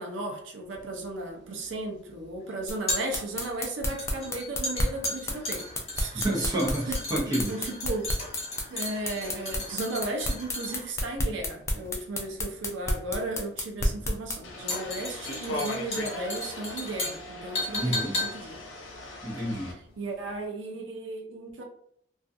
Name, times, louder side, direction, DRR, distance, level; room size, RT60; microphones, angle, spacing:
voice 1, 0.0-5.6 6.0-6.2 6.9-7.0 7.2-8.1 8.7-18.6 19.7-21.6, right 2 dB, 80° right, 2 dB, 0.5 m, -35 dB
sound 1, 0.7-20.0 20.3-20.4, left 2 dB, 35° left, 0.8 m, -36 dB
sound 2, 2.7-14.4, left 1 dB, 15° left, 0.3 m, -29 dB
voice 2, 6.1-7.5 17.7-18.1 19.2-19.7, right 1 dB, 20° right, -4 dB, 0.7 m, -29 dB
sound 3, 14.4-19.7, left 1 dB, 90° left, 0.7 m, -38 dB
2.4 x 2.3 x 2.6 m, 0.69 s
head